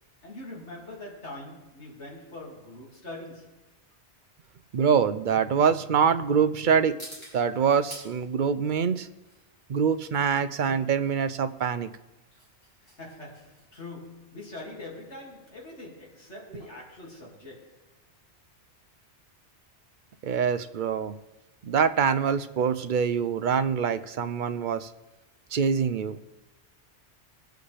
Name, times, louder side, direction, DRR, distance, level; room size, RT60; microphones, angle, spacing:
voice 1, 0.2-3.6 12.8-17.8, left 2 dB, 70° left, 2.7 m, -43 dB
voice 2, 4.7-7.0 7.3-9.1 9.7-11.9 20.2-21.2 21.6-24.9 25.5-26.2, right 6 dB, 55° right, 0.6 m, -24 dB
sound 1, 6.1-18.0, right 1 dB, 25° left, 5.4 m, -53 dB
22.0 x 8.0 x 3.3 m
omnidirectional pair, 1.2 m